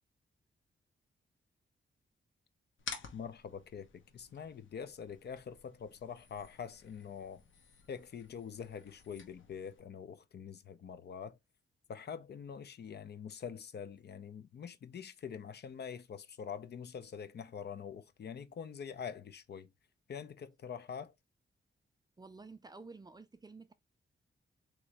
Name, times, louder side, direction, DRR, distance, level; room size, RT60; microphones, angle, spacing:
sound 1, 2.8-9.8, left 5 dB, 75° left, 0.9 m, -52 dB
voice 1, 3.1-7.4 7.9-11.4 11.9-19.7 20.1-21.1, left 7 dB, 55° left, 0.5 m, -45 dB
voice 2, 22.2-23.7, right 3 dB, 20° right, 0.4 m, -51 dB
3.7 x 3.0 x 3.2 m
wide cardioid pair, 155°, 20 cm